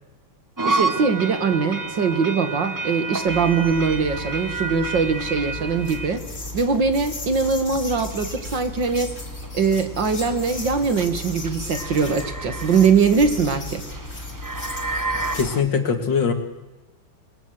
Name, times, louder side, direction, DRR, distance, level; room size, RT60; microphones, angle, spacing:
sound 1, 0.6-15.6, right 3 dB, 20° right, 0.5 m, -31 dB
voice 1, 0.6-6.2 6.5-9.1 9.5-13.8, right 5 dB, 65° right, 8 dB, 2.6 m, -21 dB
sound 2, 3.3-15.5, left 2 dB, 40° left, 3.2 m, -35 dB
voice 2, 15.3-16.3, left 6 dB, 65° left, 6 dB, 2.8 m, -21 dB
28.5 x 21.5 x 8.0 m, 1.1 s
omnidirectional pair, 2.2 m